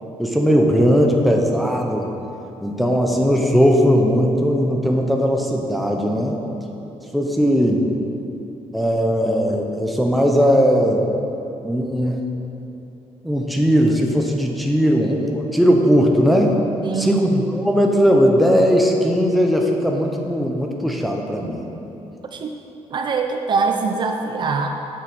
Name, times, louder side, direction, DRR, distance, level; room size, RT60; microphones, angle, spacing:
voice 1, 0.2-2.1 2.6-6.4 7.1-7.9 8.7-11.0 11.6-12.2 13.2-16.6 17.0-21.7, equal, ahead, 0 dB, 0.9 m, -18 dB
voice 2, 16.8-17.5 22.3-22.6 22.9-24.7, right 4 dB, 40° right, 4 dB, 0.6 m, -23 dB
8.7 x 7.5 x 6.2 m, 2.9 s
cardioid pair, 160°, 12 cm